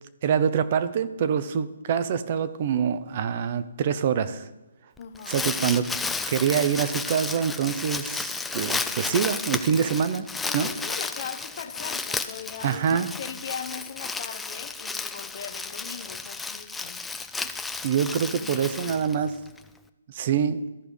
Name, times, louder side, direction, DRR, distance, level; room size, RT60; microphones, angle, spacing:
voice 1, 0.2-4.5 5.3-5.9 6.3-10.3 10.5-10.7 12.6-13.1 17.8-19.4 20.1-20.6, right 7 dB, 40° right, 13 dB, 0.6 m, -25 dB
voice 2, 5.0-5.4 10.5-17.0 18.4-19.1, left 7 dB, 50° left, 12 dB, 0.7 m, -39 dB
Crumpling crinkling, 5.0-19.6, left 4 dB, 5° left, 0.4 m, -33 dB
13.5 x 4.7 x 5.2 m, 1.0 s
hypercardioid pair, 150°, 0 cm